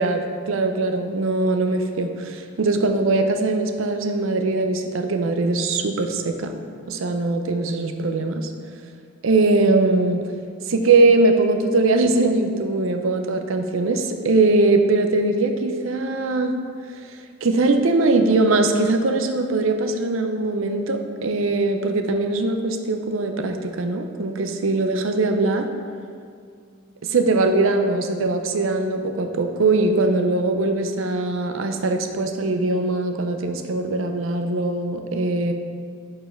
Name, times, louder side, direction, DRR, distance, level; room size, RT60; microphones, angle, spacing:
voice 1, 0.0-6.5 6.9-8.5 9.2-10.2 10.7-16.5 17.4-25.7 27.0-35.5, right 2 dB, 75° right, 5 dB, 0.6 m, -21 dB
5.0 x 4.7 x 5.8 m, 2.2 s
head